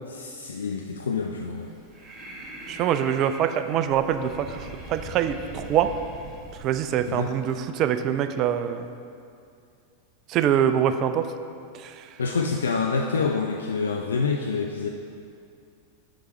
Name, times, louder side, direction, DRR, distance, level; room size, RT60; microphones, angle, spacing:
voice 1, 0.1-1.7 7.1-7.3 12.2-14.9, left 4 dB, 70° left, 2 dB, 0.3 m, -27 dB
Breathing, 1.6-7.5, right 1 dB, 15° right, 1.1 m, -42 dB
voice 2, 2.7-5.9 6.6-8.9 10.3-11.3 11.8-12.0, right 9 dB, 35° right, 9 dB, 0.3 m, -24 dB
6.0 x 5.1 x 4.2 m, 2.4 s
figure-of-eight pair, 90°, 0 cm